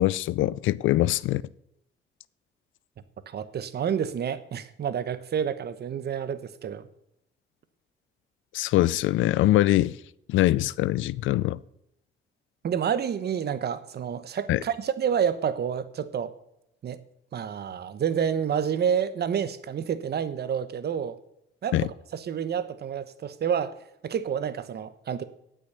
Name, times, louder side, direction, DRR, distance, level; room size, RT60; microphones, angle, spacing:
voice 1, 0.0-1.4 8.5-10.0 10.3-11.6 14.5-14.6 21.7-21.9, left 15 dB, 80° left, 0.5 m, -23 dB
voice 2, 3.3-6.9 12.6-16.3 16.8-17.0 17.3-21.2 21.6-21.8 22.1-23.7 24.0-25.2, right 8 dB, 55° right, 1.1 m, -29 dB
17.5 x 6.3 x 6.7 m
cardioid pair, 90°, 20 cm